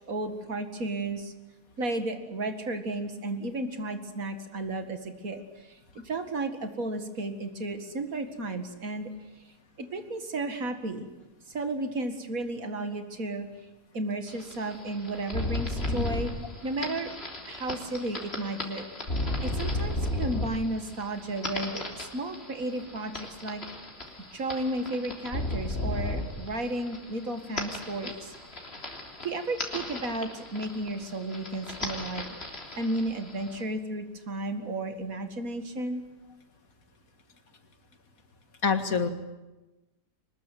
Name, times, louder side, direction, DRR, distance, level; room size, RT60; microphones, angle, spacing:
voice 1, 0.1-1.3 1.8-5.4 5.7-5.8 6.0-9.1 9.8-11.1 11.5-13.5 13.9-16.3 16.6-17.1 17.5-18.8 19.4-23.6 24.3-28.3 29.2-32.2 32.8-36.0, right 2 dB, 60° right, 8 dB, 2.4 m, -33 dB
sound 1, 14.3-33.6, left 1 dB, 40° left, 3.7 m, -35 dB
voice 2, 38.6-39.1, left 5 dB, 60° left, 8 dB, 2.1 m, -26 dB
24.5 x 20.5 x 9.3 m, 1.1 s
omnidirectional pair, 1.7 m